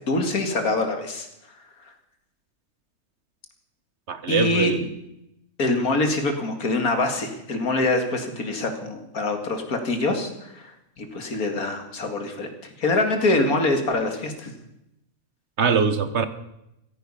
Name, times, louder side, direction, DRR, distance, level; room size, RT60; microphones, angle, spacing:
voice 1, 0.1-1.3 4.3-4.7 5.6-14.5, left 2 dB, 90° left, 6 dB, 2.6 m, -24 dB
voice 2, 4.1-4.9 15.6-16.3, right 6 dB, 55° right, 12 dB, 1.3 m, -22 dB
15.5 x 15.0 x 5.6 m, 0.85 s
omnidirectional pair, 1.5 m